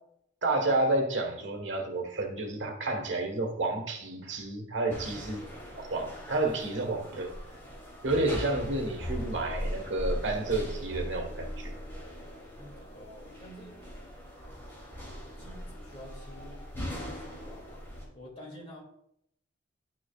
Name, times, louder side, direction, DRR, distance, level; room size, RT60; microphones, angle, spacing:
voice 1, 0.4-5.4 5.7-7.4 8.0-11.8, right 2 dB, 65° right, 3 dB, 1.4 m, -30 dB
sound 1, 4.9-18.0, equal, 10° left, 2.8 m, -40 dB
voice 2, 12.6-13.8 15.4-17.9 18.1-18.8, equal, 30° left, -2 dB, 2.5 m, -49 dB
11.5 x 6.2 x 2.4 m, 0.77 s
head